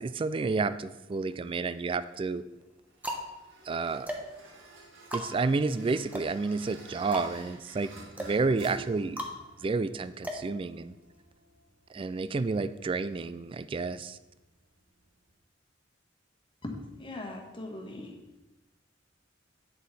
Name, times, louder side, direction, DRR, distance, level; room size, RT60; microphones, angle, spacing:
voice 1, 0.0-2.4 3.7-4.1 5.1-9.2 9.6-10.9 11.9-14.2, right 4 dB, 30° right, 15 dB, 0.3 m, -30 dB
sound 1, 1.1-1.8 2.5-11.2, equal, 10° right, 0.9 m, -40 dB
sound 2, 2.0-15.4, right 3 dB, 80° right, 1.6 m, -52 dB
voice 2, 16.6-18.1, left 2 dB, 25° left, 1 dB, 1.4 m, -40 dB
9.3 x 6.6 x 4.1 m, 1.0 s
head